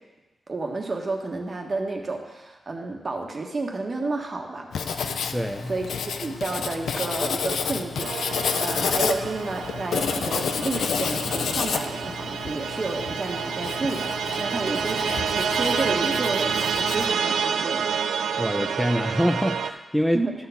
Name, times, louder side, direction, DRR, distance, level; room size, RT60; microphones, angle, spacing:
voice 1, 0.5-5.1 5.7-17.9 20.1-20.3, right 3 dB, 45° right, 2 dB, 1.4 m, -31 dB
Writing, 4.7-17.1, left 6 dB, 85° left, 0.5 m, -30 dB
voice 2, 5.3-5.7 18.4-20.2, equal, ahead, 4 dB, 0.6 m, -24 dB
sound 1, 8.0-19.7, right 7 dB, 90° right, 0.4 m, -28 dB
11.0 x 3.9 x 7.0 m, 1.1 s
cardioid pair, 60°, 0 cm